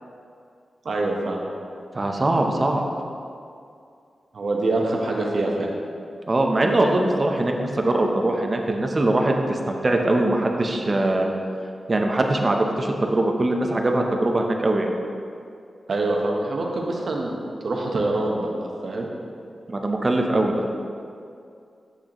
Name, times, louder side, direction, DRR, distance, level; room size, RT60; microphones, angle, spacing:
voice 1, 0.8-1.4 4.3-5.7 15.9-19.1, right 2 dB, 60° right, 0 dB, 0.9 m, -25 dB
voice 2, 1.9-2.8 6.3-11.3 11.9-14.9 19.7-20.5, right 2 dB, 30° right, 2 dB, 0.7 m, -22 dB
8.2 x 6.1 x 3.0 m, 2.4 s
wide cardioid pair, 120°, 0 cm